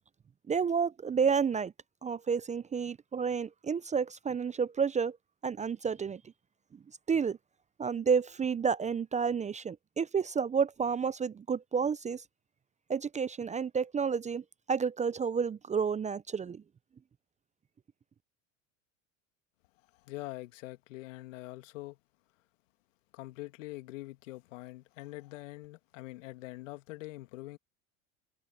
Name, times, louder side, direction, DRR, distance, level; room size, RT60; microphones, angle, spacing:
voice 1, 0.5-1.7 2.0-5.2 5.4-6.2 7.1-7.4 7.8-12.2 12.9-16.6, right 6 dB, 20° right, 0.6 m, -30 dB
voice 2, 19.9-22.0 23.1-27.6, left 19 dB, 75° left, 2.3 m, -44 dB
hypercardioid pair, 85°, 38 cm